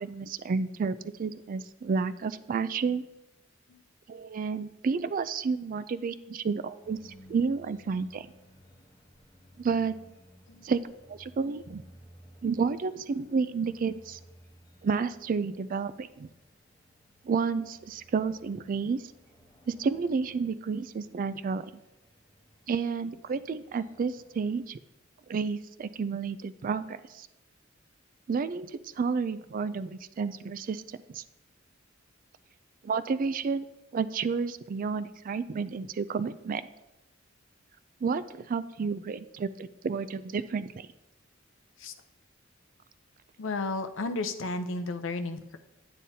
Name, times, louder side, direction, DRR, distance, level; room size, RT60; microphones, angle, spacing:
voice 1, 0.0-3.0 4.1-8.3 9.6-10.0 10.6-10.8 11.1-11.8 12.4-14.2 14.8-16.3 17.3-19.0 19.7-21.6 22.7-24.8 25.3-27.3 28.3-28.7 29.0-31.2 32.8-33.6 33.9-36.6 38.0-40.9, right 5 dB, 45° right, 14 dB, 0.3 m, -31 dB
sound 1, 6.8-24.5, equal, 20° left, 1.0 m, -58 dB
voice 2, 43.4-45.6, left 3 dB, 70° left, 9 dB, 0.6 m, -33 dB
10.0 x 9.0 x 2.7 m, 0.99 s
head